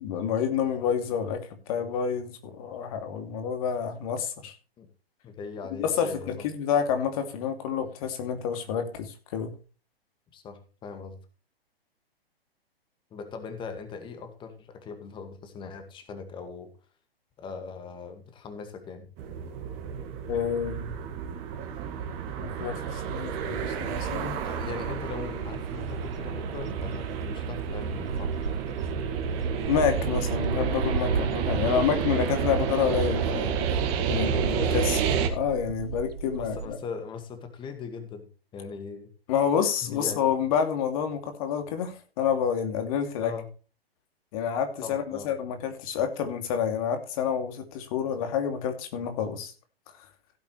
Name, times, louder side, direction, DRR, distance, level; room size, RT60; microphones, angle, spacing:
voice 1, 0.0-1.4 1.7-4.5 5.7-9.5 20.3-20.9 22.4-24.4 29.7-33.5 34.1-36.8 39.3-43.3 44.3-49.5, left 7 dB, 35° left, 6 dB, 2.8 m, -28 dB
voice 2, 5.2-6.4 10.3-11.2 13.1-16.7 17.4-19.1 24.4-28.3 34.0-34.6 36.3-39.1 39.8-40.2 43.2-43.5 44.8-45.3, left 5 dB, 15° left, 8 dB, 2.0 m, -40 dB
sound 1, 19.2-35.3, right 7 dB, 30° right, 2.1 m, -30 dB
sound 2, 25.2-36.7, right 5 dB, 70° right, 1.4 m, -36 dB
16.5 x 8.5 x 3.3 m, 0.35 s
figure-of-eight pair, 120°, 30 cm